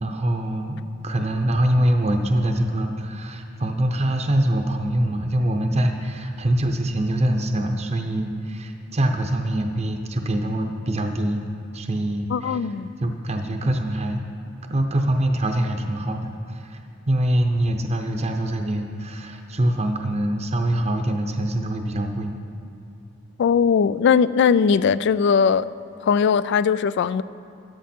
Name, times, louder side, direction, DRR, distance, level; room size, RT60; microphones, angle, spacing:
voice 1, 0.0-11.5 11.7-12.6 13.0-14.2 14.7-16.8 17.1-22.4, right 1 dB, 35° right, 3 dB, 0.7 m, -24 dB
voice 2, 12.3-12.9 23.4-25.7 26.0-27.2, left 6 dB, 60° left, 17 dB, 0.3 m, -19 dB
14.0 x 10.5 x 4.4 m, 2.5 s
head